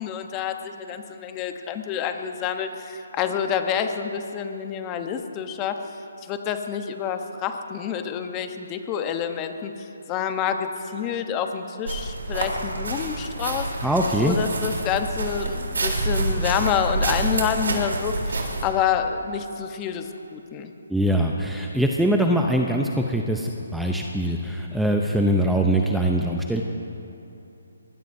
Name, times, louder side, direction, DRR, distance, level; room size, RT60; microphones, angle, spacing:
voice 1, 0.0-5.8 6.2-13.7 14.2-20.7, left 8 dB, 20° left, 6 dB, 1.0 m, -28 dB
sound 1, 11.8-18.6, right 2 dB, 80° right, 3.6 m, -27 dB
voice 2, 13.8-14.4 20.9-26.6, right 1 dB, ahead, 0 dB, 0.7 m, -22 dB
22.5 x 20.0 x 2.7 m, 2.9 s
hypercardioid pair, 155°, 0 cm